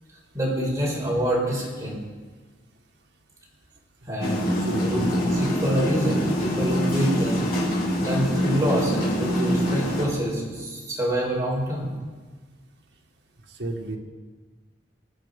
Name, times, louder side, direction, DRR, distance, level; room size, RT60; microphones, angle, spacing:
voice 1, 0.3-2.0 4.1-7.4 8.0-11.9, equal, 15° right, -3 dB, 5.3 m, -26 dB
sound 1, 4.2-10.1, equal, 50° left, 3.9 m, -25 dB
voice 2, 4.7-5.1 13.6-14.0, right 1 dB, 65° right, 2 dB, 1.8 m, -32 dB
23.5 x 9.1 x 5.4 m, 1.4 s
head